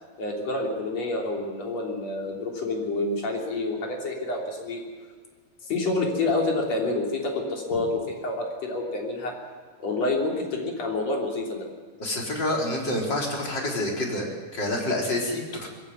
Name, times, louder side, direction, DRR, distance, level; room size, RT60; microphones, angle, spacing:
voice 1, 0.2-4.8 5.7-7.9 8.2-9.3 9.8-11.6, left 2 dB, 50° left, -1 dB, 4.5 m, -28 dB
voice 2, 12.0-15.7, left 1 dB, 30° left, -1 dB, 4.5 m, -28 dB
21.5 x 16.5 x 9.5 m, 1.5 s
omnidirectional pair, 3.9 m